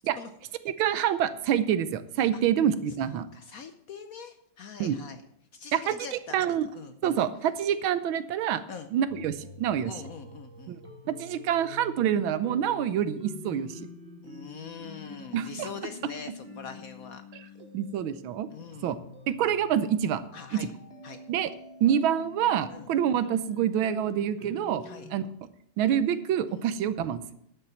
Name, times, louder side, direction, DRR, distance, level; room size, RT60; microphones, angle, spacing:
voice 1, 0.8-3.3 4.8-5.0 5.7-6.7 7.0-8.6 8.9-9.9 10.7-10.8 11.1-13.8 15.3-15.7 17.7-18.5 18.8-19.0 19.3-20.2 21.3-21.5 21.8-24.8 25.1-25.3 25.8-27.2, right 9 dB, 90° right, 13 dB, 1.6 m, -26 dB
voice 2, 3.0-5.2 5.5-7.2 8.7-8.9 9.8-10.8 14.2-17.6 18.5-18.9 20.3-20.7 21.0-21.2 22.7-22.9 24.8-25.1 26.5-26.7, left 6 dB, 60° left, 9 dB, 0.9 m, -43 dB
sound 1, 9.1-25.1, left 2 dB, 30° right, 2.5 m, -47 dB
11.5 x 7.0 x 7.1 m, 0.70 s
omnidirectional pair, 2.2 m